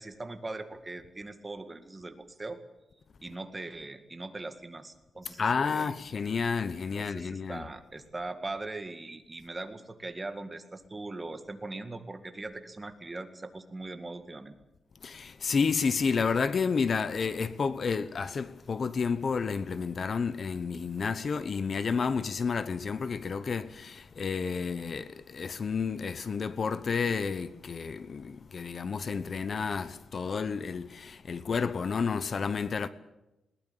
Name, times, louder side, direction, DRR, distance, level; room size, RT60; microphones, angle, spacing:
voice 1, 0.0-2.6 3.2-5.9 6.9-14.6, right 2 dB, 20° right, 2.0 m, -40 dB
voice 2, 5.4-7.7 15.0-32.9, left 5 dB, 45° left, 1.0 m, -30 dB
20.5 x 19.5 x 8.7 m
wide cardioid pair, 130°, 0 cm